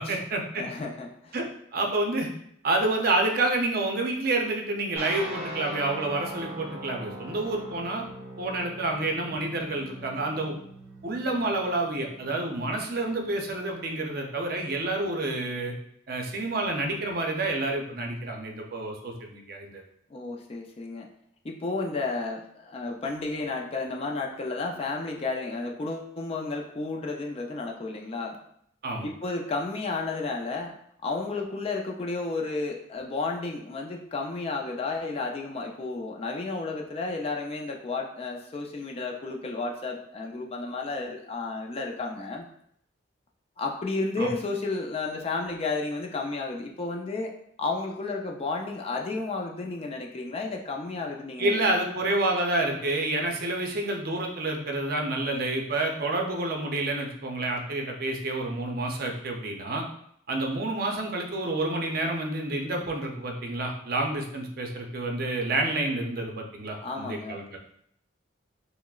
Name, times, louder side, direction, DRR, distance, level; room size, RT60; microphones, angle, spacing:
voice 1, 0.0-0.6 1.3-1.5 1.7-2.3 2.6-8.0 8.4-10.5 11.0-15.7 16.1-19.8 28.8-29.1 44.2-44.3 51.4-59.8 60.3-67.6, right 2 dB, 50° right, 2 dB, 0.5 m, -29 dB
voice 2, 0.5-1.4 20.1-21.1 21.4-28.4 29.0-30.7 31.0-42.4 43.6-47.3 47.6-51.8 66.8-67.6, left 3 dB, 30° left, 1 dB, 0.4 m, -32 dB
sound 1, 5.0-13.8, right 1 dB, 10° right, 0.6 m, -41 dB
5.7 x 2.0 x 2.3 m, 0.69 s
head